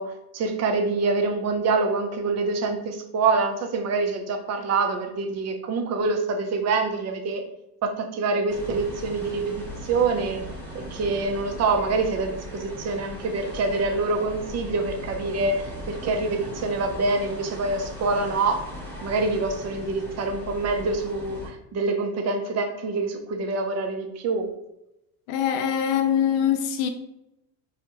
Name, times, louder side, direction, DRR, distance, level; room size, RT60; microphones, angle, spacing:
voice 1, 0.0-7.4 7.8-10.4 10.7-18.6 19.0-24.5, right 3 dB, 35° right, 0.6 m, -26 dB
sound 1, 8.5-21.5, equal, 5° left, 1.1 m, -38 dB
voice 2, 25.3-26.9, left 9 dB, 50° left, 0.6 m, -23 dB
3.4 x 2.4 x 2.9 m
hypercardioid pair, 80°, 49 cm